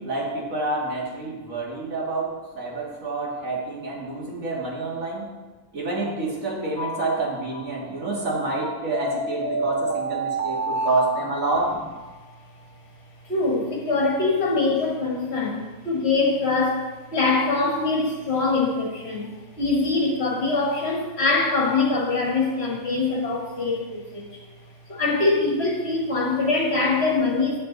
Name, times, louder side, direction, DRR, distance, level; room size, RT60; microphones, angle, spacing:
voice 1, 0.0-5.3 5.7-11.7, right 3 dB, 85° right, -4 dB, 2.3 m, -28 dB
sound 1, 6.8-7.8 8.9-12.2, right 1 dB, 15° right, 0.6 m, -29 dB
voice 2, 13.3-24.2 24.9-27.6, left 3 dB, 55° left, -1 dB, 1.8 m, -23 dB
8.2 x 7.8 x 3.9 m, 1.2 s
omnidirectional pair, 1.4 m